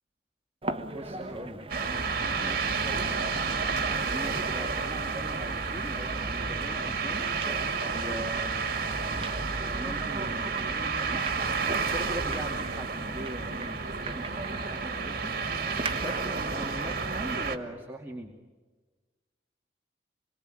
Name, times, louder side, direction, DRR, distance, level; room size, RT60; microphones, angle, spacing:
sound 1, 0.6-17.1, right 2 dB, 30° right, 1.5 m, -40 dB
voice 1, 0.9-3.3 3.8-7.3 7.9-8.7 9.6-11.3 11.9-15.3 15.9-18.3, right 1 dB, 15° right, 1 dB, 2.3 m, -41 dB
sound 2, 1.7-17.6, right 4 dB, 55° right, 2.3 m, -31 dB
27.5 x 22.5 x 9.1 m, 1.3 s
head